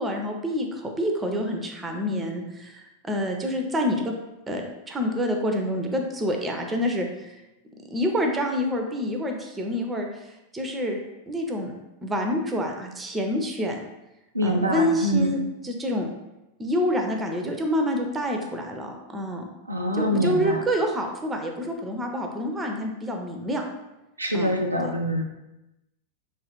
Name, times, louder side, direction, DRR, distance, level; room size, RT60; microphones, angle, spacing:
voice 1, 0.0-4.1 4.5-7.4 7.9-11.0 11.3-11.8 12.0-13.8 14.4-16.1 16.6-19.4 19.9-23.6 24.3-24.5 24.8-24.9, equal, 15° right, 3 dB, 0.4 m, -27 dB
voice 2, 14.3-15.4 19.7-20.6 24.2-25.2, equal, 85° right, 2 dB, 0.3 m, -24 dB
2.6 x 2.4 x 2.9 m, 0.97 s
figure-of-eight pair, 90°, 0 cm